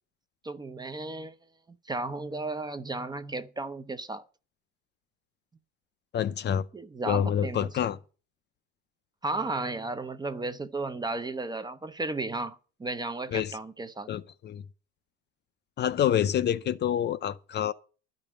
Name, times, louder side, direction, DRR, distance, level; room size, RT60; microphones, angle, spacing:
voice 1, 0.4-1.4 1.9-4.2 6.7-7.7 9.2-14.1, right 2 dB, 15° right, 0.6 m, -34 dB
voice 2, 6.1-6.6 7.0-8.0 13.3-13.6 14.1-14.6 15.8-17.7, left 9 dB, 35° left, 0.6 m, -27 dB
12.0 x 5.3 x 8.6 m
cardioid pair, 130°, 31 cm